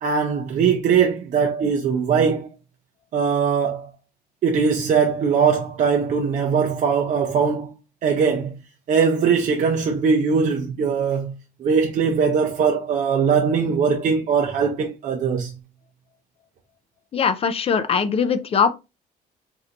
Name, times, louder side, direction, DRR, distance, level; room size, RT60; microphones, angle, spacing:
voice 1, 0.0-2.5 3.1-3.9 4.4-7.7 8.0-8.5 8.9-11.3 11.6-15.5, right 6 dB, 45° right, 0.5 m, -20 dB
voice 2, 17.1-18.7, left 6 dB, 35° left, 0.4 m, -21 dB
3.2 x 2.6 x 2.6 m
cardioid pair, 110°, 17 cm